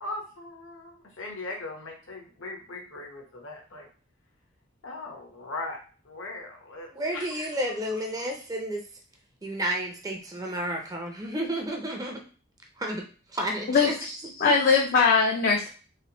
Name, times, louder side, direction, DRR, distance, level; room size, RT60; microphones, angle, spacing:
voice 1, 0.0-3.9 4.8-5.8 6.0-7.3, left 2 dB, 75° left, 1 dB, 1.0 m, -39 dB
voice 2, 6.9-8.8 9.4-12.2 12.8-13.0 13.3-13.9, right 1 dB, 20° right, 1 dB, 0.5 m, -31 dB
voice 3, 13.7-14.1 14.4-15.7, left 5 dB, 45° left, 0 dB, 0.4 m, -21 dB
3.2 x 3.0 x 2.9 m, 0.39 s
head